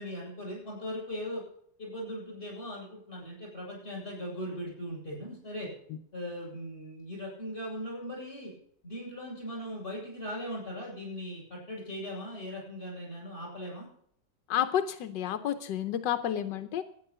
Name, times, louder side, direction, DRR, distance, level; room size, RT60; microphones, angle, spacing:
voice 1, 0.0-1.4 1.8-5.7 6.1-8.5 8.8-13.9, equal, 30° left, -2 dB, 8.3 m, -39 dB
voice 2, 14.5-16.8, left 10 dB, 90° left, 9 dB, 1.4 m, -30 dB
12.5 x 9.9 x 6.8 m, 0.63 s
omnidirectional pair, 1.9 m